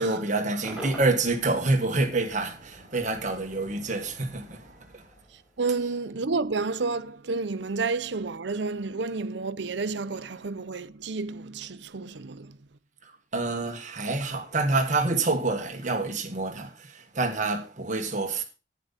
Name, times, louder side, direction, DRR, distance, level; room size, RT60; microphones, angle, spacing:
voice 1, 0.0-5.0 5.8-5.9 13.3-18.4, right 3 dB, 40° right, 1.5 m, -27 dB
Cheering / Crowd / Fireworks, 0.6-5.9, right 1 dB, 5° right, 4.5 m, -46 dB
voice 2, 5.6-12.6, right 4 dB, 65° right, 0.6 m, -30 dB
10.5 x 9.6 x 4.0 m
head